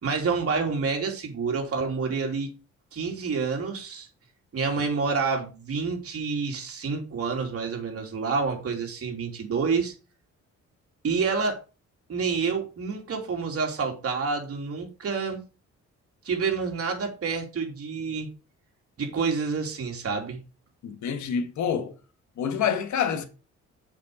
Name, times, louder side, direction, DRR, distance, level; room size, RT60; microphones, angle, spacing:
voice 1, 0.0-2.5 2.9-4.1 4.5-9.9 11.0-11.6 12.1-15.4 16.2-18.3 19.0-20.4, right 5 dB, 50° right, 3.1 m, -28 dB
voice 2, 20.8-21.9 22.4-23.3, left 7 dB, 70° left, 1.5 m, -27 dB
7.4 x 5.8 x 5.0 m
cardioid pair, 90°, 30 cm